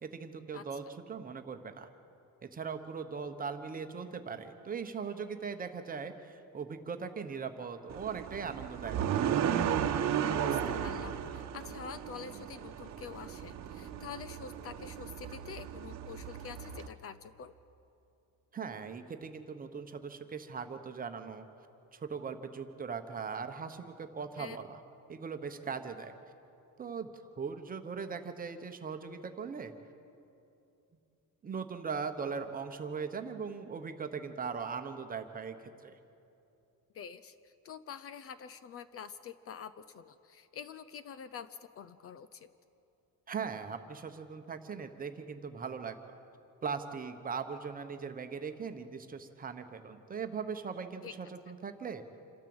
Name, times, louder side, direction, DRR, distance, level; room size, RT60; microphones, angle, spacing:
voice 1, 0.0-1.9 2.5-9.3 18.5-21.5 21.9-24.8 25.1-26.1 26.8-29.7 31.4-36.0 43.3-46.2 46.6-52.0, right 5 dB, 25° right, 7 dB, 1.0 m, -40 dB
voice 2, 0.5-0.9 10.4-17.5 24.4-24.6 36.9-42.5 51.0-51.1, left 7 dB, 40° left, 14 dB, 0.6 m, -47 dB
sound 1, 7.9-16.9, right 9 dB, 50° right, 1.1 m, -35 dB
27.5 x 13.0 x 7.8 m, 2.7 s
cardioid pair, 165°, 34 cm